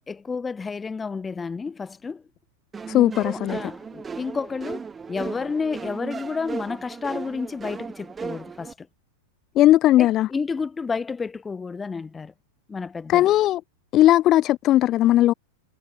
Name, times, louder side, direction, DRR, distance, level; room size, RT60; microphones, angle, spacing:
voice 1, 0.0-2.2 3.3-8.9 10.0-12.3 12.7-13.3, left 5 dB, 15° left, 2.1 m, -31 dB
sound 1, 2.7-8.7, right 5 dB, 15° right, 4.3 m, -36 dB
voice 2, 2.9-3.6 9.6-10.3 13.1-13.6 13.9-15.3, left 14 dB, 35° left, 0.4 m, -17 dB
figure-of-eight pair, 90°, 0 cm